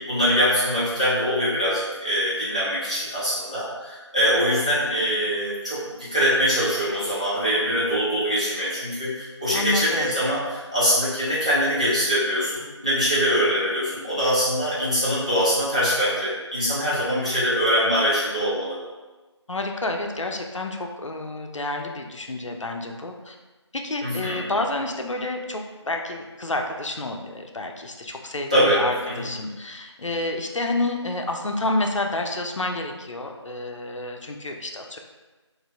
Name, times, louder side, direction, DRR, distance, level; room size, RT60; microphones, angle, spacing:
voice 1, 0.0-18.8 24.0-24.4 28.5-29.3, equal, 15° right, -12 dB, 0.5 m, -23 dB
voice 2, 9.5-10.1 19.5-23.4 23.7-35.0, left 2 dB, 90° left, 3 dB, 0.5 m, -29 dB
4.0 x 2.5 x 2.5 m, 1.2 s
figure-of-eight pair, 170°, 15 cm